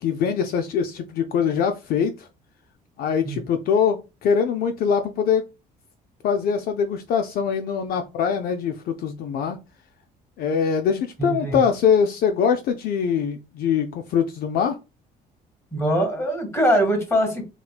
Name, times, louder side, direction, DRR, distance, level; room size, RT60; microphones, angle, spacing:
voice 1, 0.0-2.3 3.0-5.4 6.2-9.6 10.4-14.8, left 7 dB, 65° left, 6 dB, 0.4 m, -23 dB
voice 2, 11.2-11.6 15.7-17.4, equal, 15° left, 3 dB, 1.7 m, -22 dB
4.1 x 2.2 x 2.3 m, 0.28 s
cardioid pair, 110°, 17 cm